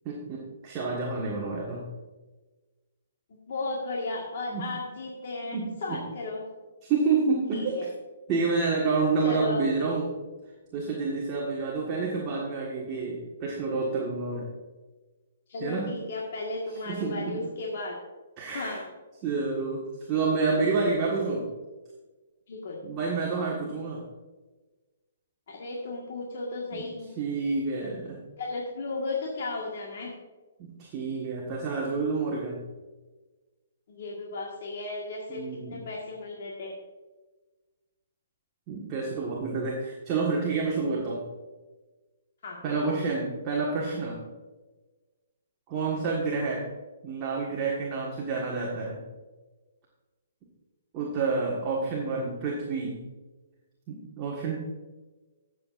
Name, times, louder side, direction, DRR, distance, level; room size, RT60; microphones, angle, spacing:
voice 1, 0.0-1.8 4.5-4.7 5.5-6.0 6.8-7.8 8.3-10.1 10.7-14.5 15.6-15.9 16.9-17.4 18.4-18.8 19.2-21.5 22.8-24.0 26.7-26.9 27.2-28.2 30.6-32.6 35.3-35.8 38.7-41.2 42.6-44.2 45.7-46.7 47.0-49.0 50.9-53.1 53.9-54.6, right 4 dB, 20° right, -5 dB, 1.7 m, -29 dB
voice 2, 3.5-6.4 7.5-7.9 9.2-9.7 15.5-18.0 18.5-18.8 22.5-22.8 25.5-27.1 27.8-27.9 28.4-30.1 33.9-35.4 35.7-36.7 42.4-42.9, left 3 dB, 55° left, -2 dB, 1.7 m, -34 dB
15.5 x 7.5 x 2.6 m, 1.2 s
hypercardioid pair, 170°, 0 cm